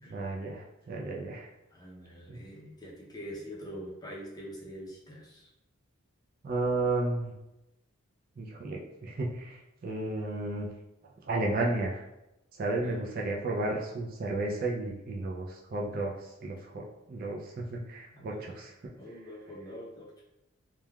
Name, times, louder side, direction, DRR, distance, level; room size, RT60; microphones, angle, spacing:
voice 1, 0.1-1.5 2.3-2.4 6.4-7.3 8.4-10.7 11.0-12.0 12.5-18.9, right 2 dB, 40° right, -1 dB, 0.3 m, -33 dB
voice 2, 1.7-5.5 12.8-13.0 18.1-18.6 19.0-20.2, equal, 20° left, -5 dB, 0.5 m, -44 dB
3.2 x 2.2 x 2.3 m, 0.92 s
head